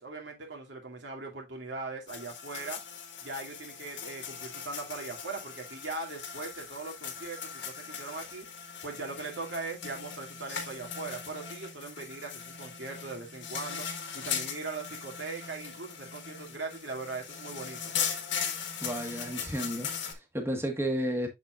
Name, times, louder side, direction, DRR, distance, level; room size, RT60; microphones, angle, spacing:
voice 1, 0.0-2.8 3.2-8.5 8.8-13.9 14.1-17.9, right 3 dB, 75° right, 2.4 m, -40 dB
sound 1, 2.1-20.1, left 7 dB, 80° left, 1.6 m, -39 dB
voice 2, 18.8-21.3, right 1 dB, 15° right, 1.4 m, -32 dB
7.3 x 7.0 x 2.4 m
head